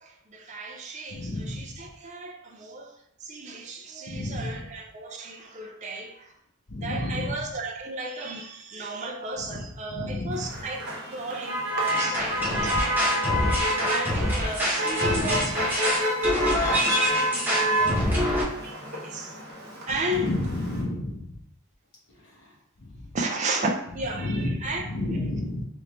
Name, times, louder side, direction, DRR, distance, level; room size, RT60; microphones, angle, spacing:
voice 1, 0.0-2.9 3.2-6.3 6.8-10.8 11.1-13.2 13.9-19.4 19.9-20.3 23.1-25.2, right 2 dB, 35° right, 1 dB, 0.4 m, -34 dB
voice 2, 1.1-1.7 4.1-4.6 6.7-7.4 9.4-9.6 9.9-10.5 12.3-12.8 15.1-15.6 17.8-18.4 20.1-21.3 22.8-23.1 24.2-25.6, left 1 dB, 55° left, -4 dB, 0.9 m, -31 dB
Motor vehicle (road), 10.3-20.8, equal, 50° right, 0.9 m, -29 dB
sound 1, 11.9-18.4, equal, 10° right, 0.9 m, -26 dB
3.4 x 3.1 x 3.5 m, 0.75 s
head